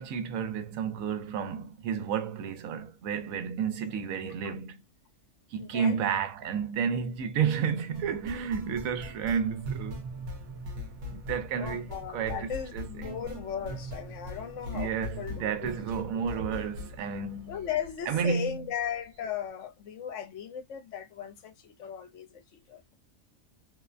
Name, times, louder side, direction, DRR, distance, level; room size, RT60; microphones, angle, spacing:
voice 1, 0.0-4.8 5.5-10.1 11.1-13.2 14.7-17.6 18.1-18.6, right 7 dB, 90° right, 1.0 m, -31 dB
voice 2, 5.6-6.1 11.6-15.7 16.3-16.4 17.5-23.0, left 8 dB, 70° left, 0.9 m, -37 dB
sound 1, 7.9-18.9, left 1 dB, 65° right, 1.0 m, -41 dB
2.6 x 2.1 x 2.3 m
omnidirectional pair, 1.4 m